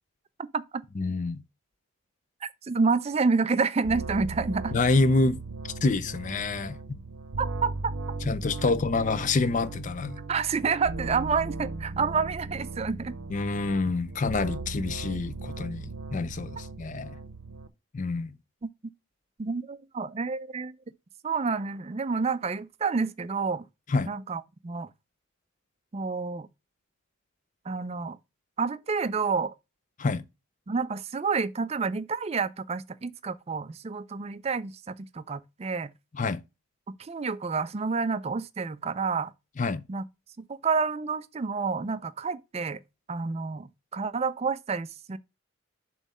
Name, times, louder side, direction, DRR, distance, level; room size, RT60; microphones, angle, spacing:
voice 1, 0.4-0.8 2.4-4.7 7.4-7.9 10.3-13.2 19.4-20.7 21.2-23.6 24.1-24.9 25.9-26.5 27.7-28.2 28.6-29.5 30.7-35.9 37.0-39.3 39.9-40.1 40.5-42.8 43.1-45.2, right 4 dB, 30° right, 0.4 m, -29 dB
voice 2, 1.0-1.4 4.7-5.4 5.8-6.8 8.3-10.2 13.3-17.2 17.9-18.3 23.9-24.1 30.0-30.2 36.1-36.4 39.6-39.8, left 3 dB, 35° left, 0.4 m, -27 dB
sound 1, 3.8-17.7, right 3 dB, 85° right, 0.7 m, -37 dB
7.2 x 3.1 x 5.4 m
head